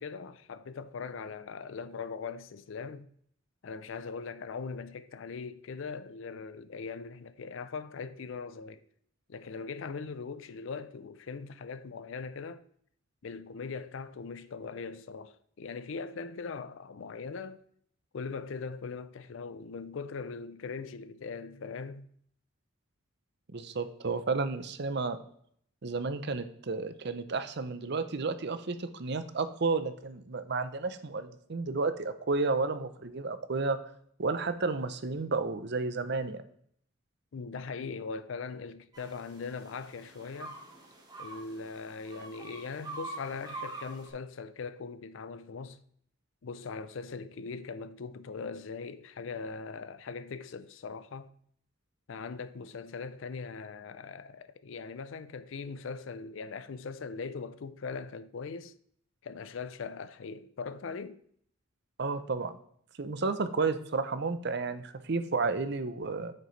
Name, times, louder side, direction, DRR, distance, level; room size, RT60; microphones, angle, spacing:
voice 1, 0.0-3.1 3.6-8.8 9.3-12.6 13.2-17.6 18.1-22.1 37.3-40.6 41.2-45.8 46.4-51.3 52.1-58.7 59.2-61.2, left 5 dB, 65° left, 0.4 m, -40 dB
voice 2, 23.5-25.2 25.8-33.8 34.2-36.4 62.0-62.5 63.0-66.3, right 4 dB, 55° right, 0.6 m, -32 dB
sound 1, 38.9-44.1, right 2 dB, 20° right, 1.3 m, -45 dB
8.7 x 6.6 x 3.2 m
head